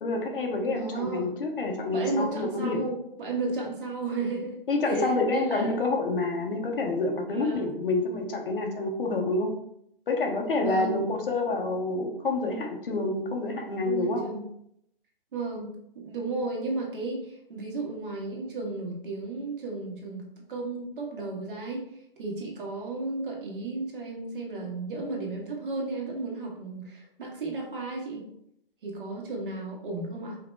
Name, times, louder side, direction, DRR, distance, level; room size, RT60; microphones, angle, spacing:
voice 1, 0.0-2.8 4.7-9.5 10.1-14.3, left 2 dB, 65° left, 2 dB, 1.0 m, -28 dB
voice 2, 0.7-1.3 1.9-4.6 4.8-5.7 7.3-7.8 10.6-11.0 13.8-14.4 15.3-15.7 15.9-21.9 22.2-28.2 28.8-30.4, right 3 dB, 60° right, -1 dB, 1.6 m, -33 dB
4.9 x 2.1 x 4.5 m, 0.74 s
figure-of-eight pair, 130°, 30 cm